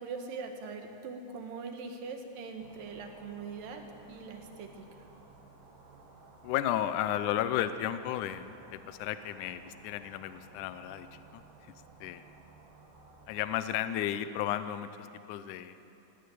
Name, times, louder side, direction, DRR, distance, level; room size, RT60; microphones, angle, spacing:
voice 1, 0.0-3.8 4.1-5.0, right 4 dB, 90° right, 5 dB, 3.4 m, -42 dB
sound 1, 2.6-13.5, right 3 dB, 70° right, 3.8 m, -56 dB
voice 2, 6.4-11.7 12.0-12.2 13.3-15.8, left 11 dB, 75° left, 12 dB, 2.1 m, -34 dB
18.0 x 17.5 x 9.3 m, 2.9 s
omnidirectional pair, 3.8 m